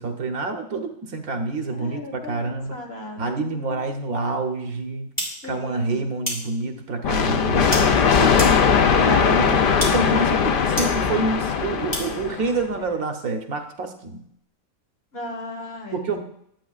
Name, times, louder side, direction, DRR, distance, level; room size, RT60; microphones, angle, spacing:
voice 1, 0.0-2.8 3.2-5.1 5.4-8.6 9.0-14.2 15.9-16.2, right 3 dB, 85° right, 5 dB, 1.5 m, -28 dB
voice 2, 1.7-3.9 5.4-6.1 11.1-11.2 15.1-16.2, left 2 dB, 45° left, 1 dB, 1.6 m, -37 dB
sound 1, 5.2-5.3 6.3-6.4 7.7-7.8 8.4-8.5 9.5-9.6 9.8-9.9 10.8-10.9 11.9-12.0, equal, 15° left, 2.4 m, -25 dB
sound 2, 7.0-12.6, left 6 dB, 65° left, 0.5 m, -19 dB
11.0 x 8.1 x 2.4 m, 0.70 s
omnidirectional pair, 1.5 m